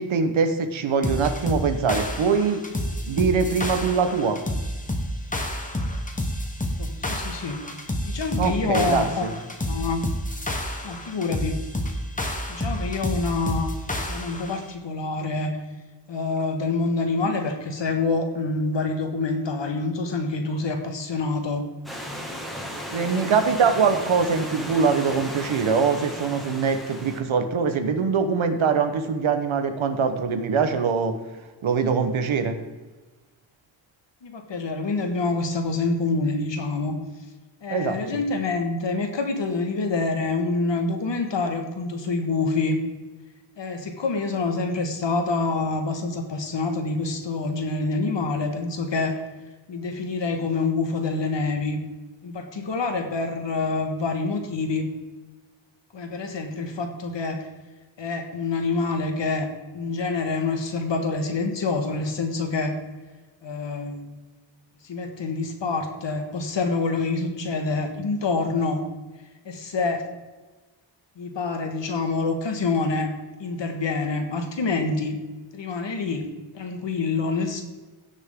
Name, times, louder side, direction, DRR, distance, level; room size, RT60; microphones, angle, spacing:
voice 1, 0.0-2.6 3.1-4.4 8.4-9.3 22.9-31.2 31.6-32.6 37.7-38.0, right 5 dB, 90° right, 8 dB, 1.2 m, -23 dB
sound 1, 1.0-14.6, left 1 dB, 15° left, 1.3 m, -29 dB
voice 2, 6.8-7.6 8.0-9.3 9.7-10.0 10.8-11.6 12.5-15.6 16.1-21.6 34.2-36.9 37.6-42.8 43.6-49.2 49.7-51.8 52.2-54.9 55.9-57.5 58.0-59.5 59.7-62.8 63.4-64.1 64.8-68.8 69.4-70.0 71.2-73.1 73.4-75.2 75.5-76.3 76.5-77.6, left 3 dB, 65° left, 5 dB, 1.6 m, -26 dB
Stream / Liquid, 21.8-27.2, equal, ahead, 2.0 m, -35 dB
16.5 x 6.5 x 3.7 m, 1.2 s
wide cardioid pair, 115°, 46 cm